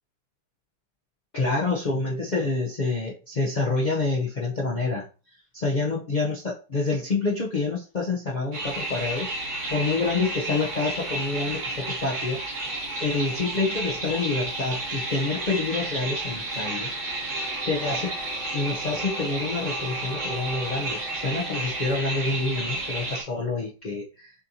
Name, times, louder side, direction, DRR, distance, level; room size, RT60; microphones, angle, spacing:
voice 1, 1.3-5.0 5.5-9.3 9.7-12.4 13.0-16.9 17.7-18.1 18.5-24.3, left 3 dB, 85° left, -4 dB, 0.4 m, -27 dB
sound 1, 8.5-23.2, right 2 dB, 30° right, 1.1 m, -31 dB
6.2 x 2.8 x 2.6 m, 0.35 s
omnidirectional pair, 1.8 m